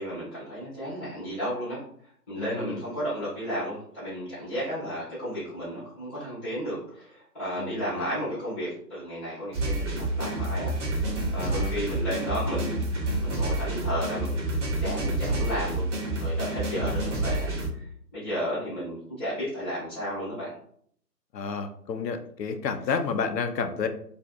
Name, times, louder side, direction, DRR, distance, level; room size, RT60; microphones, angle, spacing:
voice 1, 0.0-1.8 2.3-15.8 16.2-17.5 17.8-17.9 18.1-20.5, equal, ahead, -13 dB, 0.7 m, -33 dB
voice 2, 2.4-2.8 7.6-8.1 11.4-11.7 16.7-17.0 21.3-23.9, left 5 dB, 80° left, 7 dB, 0.6 m, -31 dB
sound 1, 9.5-17.7, right 2 dB, 45° right, 0.9 m, -28 dB
2.6 x 2.5 x 2.2 m, 0.62 s
figure-of-eight pair, 145°, 49 cm